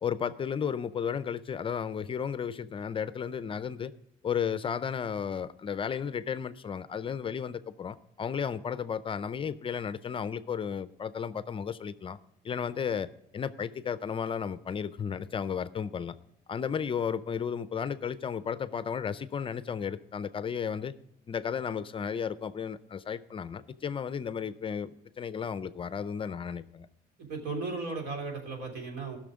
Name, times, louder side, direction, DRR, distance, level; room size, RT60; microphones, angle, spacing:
voice 1, 0.0-3.9 4.2-12.2 12.4-16.2 16.5-20.9 21.3-26.9, left 7 dB, 30° left, 0.5 m, -33 dB
voice 2, 27.2-29.2, right 3 dB, 75° right, 3.3 m, -36 dB
15.0 x 6.3 x 5.1 m
cardioid pair, 110°, 17 cm